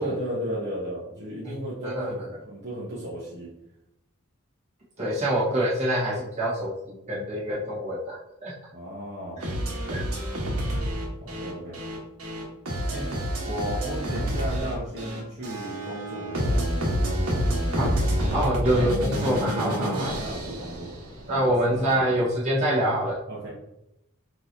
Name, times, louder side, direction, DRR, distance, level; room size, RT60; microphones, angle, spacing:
voice 1, 0.0-3.5 5.0-5.1 8.7-9.4 11.2-11.8 12.9-13.1 13.4-16.6 18.2-18.9 19.5-20.9 21.3-22.3 23.3-23.5, equal, 45° right, -7 dB, 1.0 m, -35 dB
voice 2, 5.0-8.5 9.9-10.0 17.7-17.9 18.3-20.2 21.3-23.1, right 1 dB, 30° right, -8 dB, 1.6 m, -25 dB
sound 1, 9.4-21.4, equal, 85° right, 1.3 m, -28 dB
6.2 x 3.0 x 2.7 m, 0.87 s
head